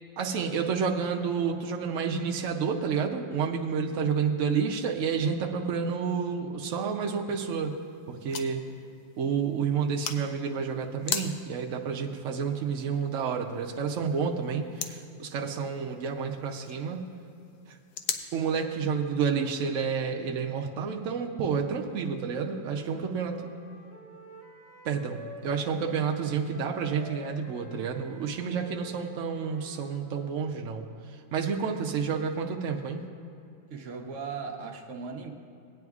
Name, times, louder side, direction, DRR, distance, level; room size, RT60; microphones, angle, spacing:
voice 1, 0.2-7.7 8.1-8.6 9.2-17.0 17.7-17.8 18.3-23.4 24.8-30.9 31.3-33.0, right 6 dB, 85° right, 2 dB, 0.6 m, -30 dB
sound 1, 7.3-18.3, left 8 dB, 70° left, 0.9 m, -41 dB
Wind instrument woodwind instrument, 22.5-26.2 26.5-30.4, left 1 dB, 45° left, 1.7 m, -49 dB
voice 2, 33.7-35.3, right 5 dB, 50° right, 2 dB, 1.0 m, -37 dB
18.0 x 9.3 x 2.4 m, 2.6 s
omnidirectional pair, 2.1 m